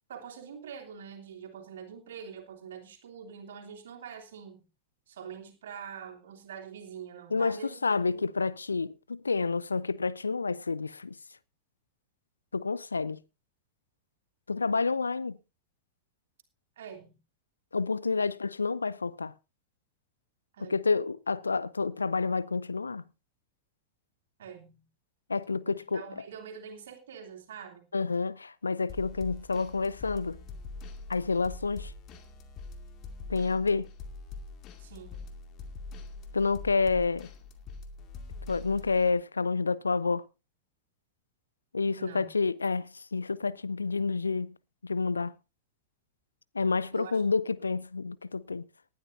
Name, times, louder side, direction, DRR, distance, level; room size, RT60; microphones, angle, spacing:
voice 1, 0.1-4.7 5.1-7.8 8.1-8.3 16.8-17.2 20.5-20.8 24.4-24.9 25.6-27.9 34.8-35.3 42.0-42.3 46.9-47.2, right 7 dB, 60° right, 3.0 m, -45 dB
voice 2, 7.3-11.1 12.5-13.2 14.5-15.4 17.7-19.3 20.6-23.0 25.3-26.0 27.9-30.4 31.1-31.9 33.3-33.9 36.3-37.3 38.5-40.3 41.7-44.5 44.8-45.3 46.5-48.6, left 4 dB, 75° left, 0.6 m, -29 dB
sound 1, 28.9-39.1, left 3 dB, 35° left, 2.2 m, -44 dB
19.0 x 11.5 x 2.7 m
figure-of-eight pair, 90°, 0 cm